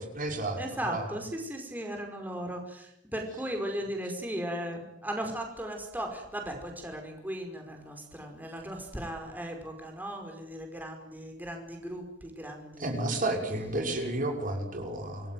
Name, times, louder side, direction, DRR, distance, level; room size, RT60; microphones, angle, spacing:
voice 1, 0.0-1.2 12.8-15.3, right 2 dB, 45° right, 3 dB, 6.2 m, -32 dB
voice 2, 0.6-13.2, right 1 dB, 10° right, 3 dB, 5.1 m, -37 dB
28.5 x 20.0 x 9.5 m, 0.78 s
head